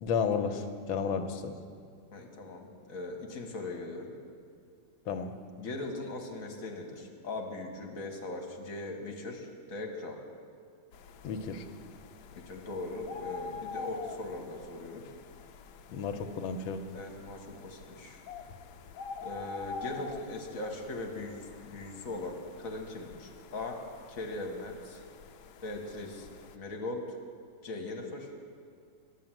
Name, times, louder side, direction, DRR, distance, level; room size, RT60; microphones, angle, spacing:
voice 1, 0.0-1.6 5.1-5.3 11.2-11.6 15.9-16.8, left 6 dB, 90° left, 5 dB, 1.5 m, -32 dB
voice 2, 2.1-4.1 5.6-10.2 12.3-15.0 16.9-18.2 19.2-23.8 24.1-25.0 25.6-26.3 26.5-27.2 27.6-28.3, left 2 dB, 45° left, 2 dB, 1.6 m, -40 dB
sound 1, 10.9-26.6, left 5 dB, 70° left, 1.1 m, -46 dB
11.0 x 7.6 x 9.0 m, 2.2 s
omnidirectional pair, 2.1 m